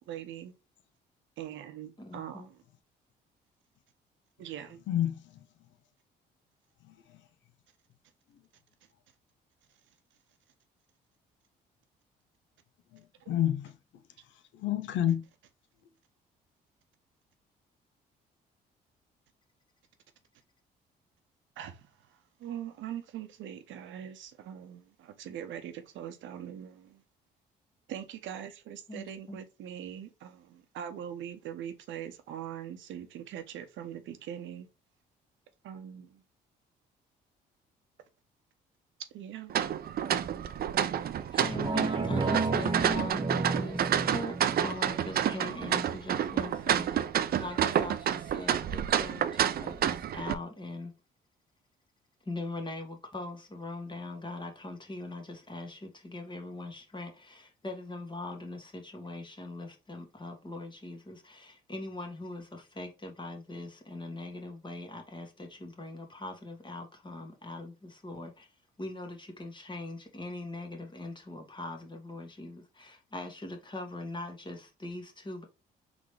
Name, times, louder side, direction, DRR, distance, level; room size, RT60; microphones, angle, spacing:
voice 1, 0.1-0.5 1.4-2.6 4.4-4.8 13.2-13.3 21.6-21.8 22.4-27.0 27.9-34.7 35.6-36.2 39.1-39.5, right 10 dB, 70° right, 0.8 m, -42 dB
voice 2, 2.0-2.5 28.9-29.4 41.3-44.4 44.6-47.0 47.4-50.9 52.3-68.5 68.8-75.4, left 2 dB, 25° left, 1.6 m, -41 dB
voice 3, 4.9-5.4 6.9-7.2 12.9-13.7 14.5-15.3, left 11 dB, 70° left, 0.6 m, -30 dB
sound 1, 39.5-50.3, right 9 dB, 50° right, 0.5 m, -29 dB
sound 2, 41.4-46.4 46.8-46.9, right 3 dB, 25° right, 1.1 m, -33 dB
3.8 x 3.5 x 3.2 m
supercardioid pair, 60°, 20 cm